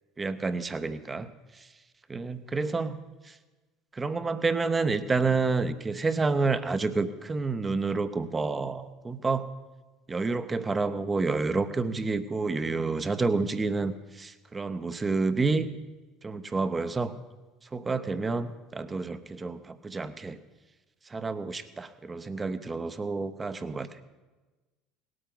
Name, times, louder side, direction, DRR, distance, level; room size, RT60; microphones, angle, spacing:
voice 1, 0.2-1.7 2.1-3.0 3.2-3.3 3.9-9.5 10.1-15.7 16.2-17.1 17.7-20.4 21.1-23.9, right 4 dB, 20° right, 12 dB, 0.9 m, -29 dB
18.0 x 12.5 x 3.9 m, 1.2 s
hypercardioid pair, 70°, 0 cm